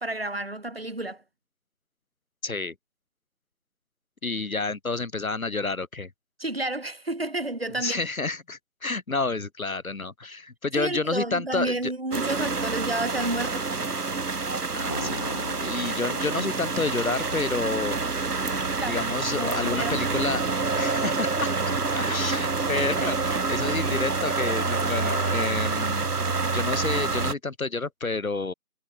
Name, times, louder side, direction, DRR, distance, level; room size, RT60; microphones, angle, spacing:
voice 1, 0.0-1.2 6.4-8.0 10.8-13.7 18.8-19.0 19.3-20.0 21.7-21.8, right 2 dB, 40° right, 1.2 m, -31 dB
voice 2, 2.4-2.7 4.2-6.1 7.7-11.9 14.7-18.0 18.9-20.5 20.8-21.5 21.9-26.1 26.5-28.5, left 3 dB, 65° left, 1.1 m, -29 dB
sound 1, 12.1-27.3, right 4 dB, 90° right, 1.2 m, -27 dB
sound 2, 14.9-17.3, left 1 dB, 20° left, 2.4 m, -39 dB
figure-of-eight pair, 170°, 45 cm